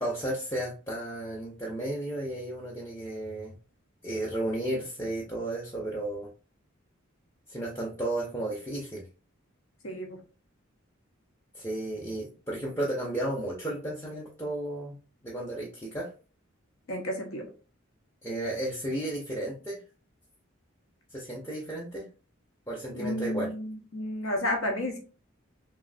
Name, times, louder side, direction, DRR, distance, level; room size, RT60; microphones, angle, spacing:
voice 1, 0.0-3.5 4.0-6.3 7.5-9.1 11.5-16.1 18.2-19.8 21.1-22.1 22.7-23.5, right 1 dB, 10° left, -4 dB, 0.5 m, -33 dB
voice 2, 9.8-10.2 16.9-17.5 22.9-25.0, left 1 dB, 90° left, 3 dB, 0.8 m, -32 dB
3.0 x 2.6 x 2.5 m, 0.35 s
head